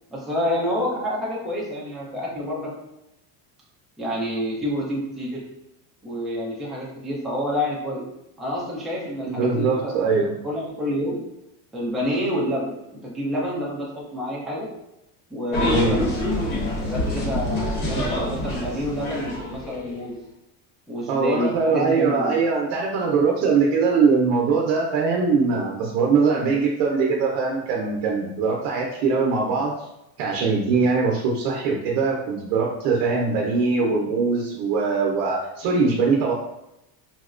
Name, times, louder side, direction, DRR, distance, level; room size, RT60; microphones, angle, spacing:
voice 1, 0.1-2.7 4.0-5.4 6.0-8.0 8.4-10.1 10.4-11.2 11.7-12.7 13.0-14.7 15.3-16.1 16.8-20.2 20.9-22.4, equal, ahead, -6 dB, 0.6 m, -28 dB
voice 2, 9.2-10.3 15.7-16.0 21.1-29.7 30.2-36.3, right 4 dB, 80° right, -2 dB, 0.7 m, -22 dB
sound 1, 15.5-20.0, left 1 dB, 55° left, 1.3 m, -26 dB
4.1 x 2.1 x 2.4 m, 0.87 s
cardioid pair, 150°, 45 cm